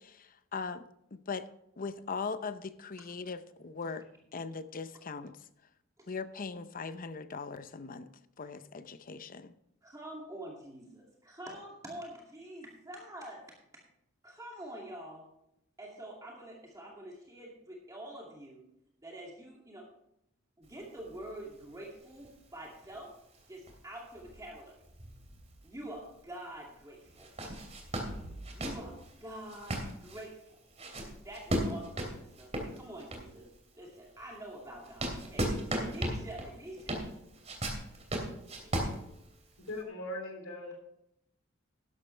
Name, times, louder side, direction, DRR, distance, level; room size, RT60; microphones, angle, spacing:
voice 1, 0.0-1.5 1.8-4.1 4.3-5.4 6.1-8.1 8.4-9.5, left 4 dB, 45° left, 0.7 m, -40 dB
voice 2, 9.8-13.4 14.2-15.3 15.8-18.6 19.0-19.9 20.6-23.1 23.5-24.8 25.6-27.3 28.5-30.4 31.2-33.5 33.8-37.0 38.2-39.2, right 1 dB, 15° right, 2.4 m, -46 dB
sound 1, 20.6-26.0 26.3-26.4 27.1-33.5 34.0-39.7, right 1 dB, 35° right, 2.8 m, -37 dB
voice 3, 39.6-40.7, left 1 dB, 70° left, 3.1 m, -40 dB
12.5 x 11.5 x 3.3 m
head